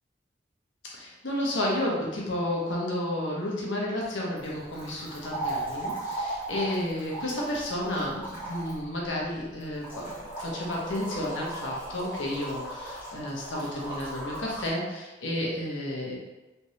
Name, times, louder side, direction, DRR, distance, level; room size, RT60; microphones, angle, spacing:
voice 1, 0.9-16.2, left 1 dB, 90° left, -3 dB, 1.0 m, -31 dB
sound 1, 4.4-14.7, right 2 dB, 10° right, 1.2 m, -37 dB
3.4 x 2.8 x 3.1 m, 1.1 s
head